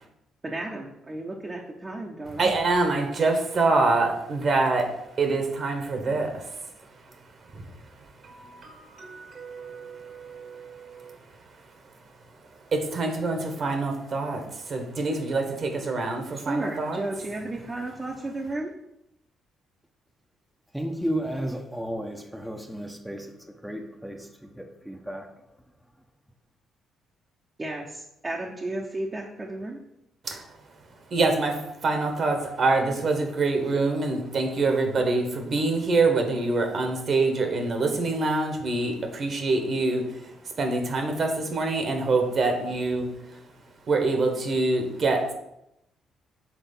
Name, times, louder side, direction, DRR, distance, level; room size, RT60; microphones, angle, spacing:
voice 1, 0.4-2.6 16.5-18.7 27.6-29.8, right 2 dB, 30° right, -1 dB, 0.9 m, -33 dB
voice 2, 2.4-6.5 7.5-7.6 8.2-11.1 12.7-17.0 30.2-30.4 31.1-40.2 40.6-43.1 43.9-45.3, right 3 dB, 55° right, 4 dB, 1.4 m, -25 dB
voice 3, 20.7-23.3 23.6-25.3, equal, 5° right, 3 dB, 0.9 m, -33 dB
6.1 x 3.6 x 5.4 m, 0.82 s
hypercardioid pair, 45°, 0 cm